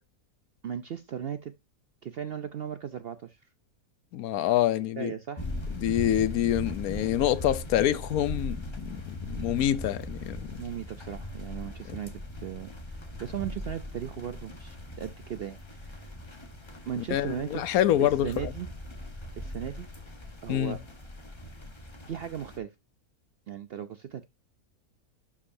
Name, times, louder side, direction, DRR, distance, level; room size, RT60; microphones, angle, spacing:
voice 1, 0.6-1.5 2.0-3.4 5.0-5.5 10.6-12.1 12.4-16.1 16.8-17.6 18.0-18.7 19.4-19.9 20.4-20.8 22.1-22.7 23.5-24.2, right 9 dB, 65° right, 0.6 m, -37 dB
voice 2, 4.1-5.1 5.8-10.6 11.9-12.0 17.1-18.5 20.5-20.8, left 12 dB, 75° left, 1.1 m, -26 dB
sound 1, 5.4-22.6, left 1 dB, 20° left, 1.1 m, -39 dB
11.5 x 4.9 x 2.7 m
omnidirectional pair, 1.6 m